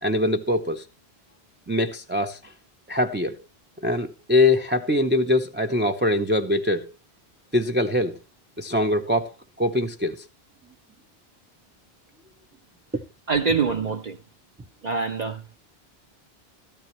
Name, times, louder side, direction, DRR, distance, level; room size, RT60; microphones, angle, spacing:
voice 1, 0.0-0.8 1.7-2.4 2.9-3.4 3.8-6.9 7.5-8.2 8.6-9.3 9.6-10.2, left 1 dB, 15° right, 0.4 m, -23 dB
voice 2, 13.3-14.2 14.8-15.4, right 5 dB, 45° right, 0.8 m, -24 dB
13.0 x 12.0 x 3.1 m
omnidirectional pair, 1.0 m